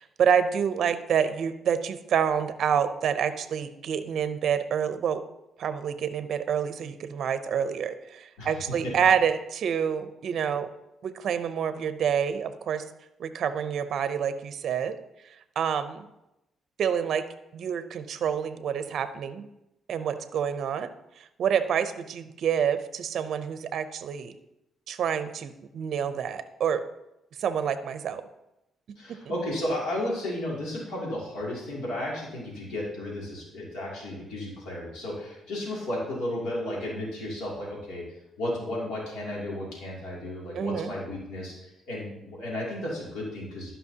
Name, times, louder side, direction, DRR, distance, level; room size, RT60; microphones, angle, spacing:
voice 1, 0.0-5.2 5.6-10.7 11.0-12.8 13.2-14.9 15.6-16.1 16.8-17.2 17.5-19.5 19.9-20.9 21.2-24.3 24.9-26.8 27.4-28.2 29.1-29.2 40.5-40.9, right 8 dB, 65° right, 11 dB, 0.5 m, -27 dB
voice 2, 8.4-8.9 29.0-38.0 38.4-43.7, left 1 dB, 90° left, -4 dB, 2.6 m, -33 dB
12.0 x 5.6 x 2.8 m, 0.89 s
cardioid pair, 90°, 0 cm